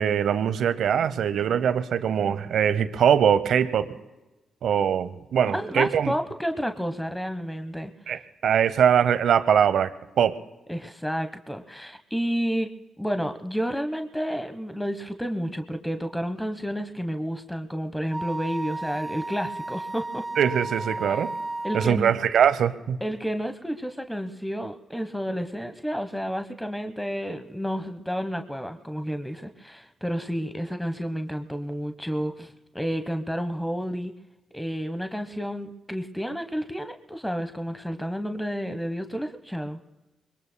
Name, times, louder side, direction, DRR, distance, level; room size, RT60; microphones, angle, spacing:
voice 1, 0.0-3.9 4.6-6.1 8.1-9.9 10.2-10.4 20.4-21.3 21.7-23.0, right 8 dB, 70° right, 13 dB, 0.9 m, -22 dB
voice 2, 5.5-7.9 10.7-20.3 21.1-21.2 21.6-22.1 23.0-34.1 34.5-39.8, equal, 5° left, 7 dB, 1.2 m, -30 dB
Wind instrument woodwind instrument, 18.1-22.0, right 2 dB, 20° right, 0.6 m, -33 dB
25.5 x 22.0 x 2.2 m, 1.1 s
hypercardioid pair, 40°, 0 cm